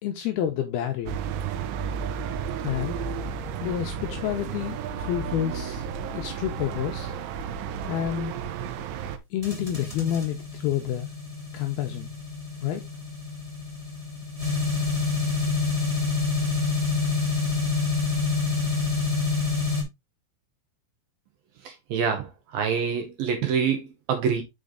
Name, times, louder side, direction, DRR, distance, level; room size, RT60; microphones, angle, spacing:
voice 1, 0.0-1.2 2.6-3.0 3.6-5.9 6.1-7.1 7.9-8.3 9.3-11.1 11.5-12.1 12.6-12.8, left 11 dB, 80° left, 2.3 m, -29 dB
sound 1, 1.1-9.2, right 7 dB, 90° right, 3.2 m, -32 dB
sound 2, 9.4-19.8, left 4 dB, 10° right, 2.3 m, -27 dB
voice 2, 21.9-22.3 22.5-24.4, right 6 dB, 70° right, 2.4 m, -25 dB
6.5 x 5.4 x 3.7 m
omnidirectional pair, 5.2 m